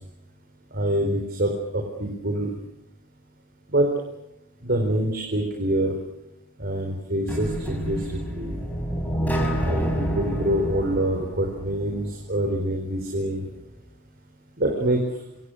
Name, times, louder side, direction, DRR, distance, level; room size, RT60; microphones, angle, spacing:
voice 1, 0.7-2.5 3.7-3.9 4.6-6.0 6.6-8.6 9.6-13.5 14.6-15.0, right 1 dB, 45° right, 3 dB, 4.3 m, -25 dB
sound 1, 7.3-12.2, equal, 10° left, 5.3 m, -28 dB
26.0 x 25.5 x 6.5 m, 0.87 s
head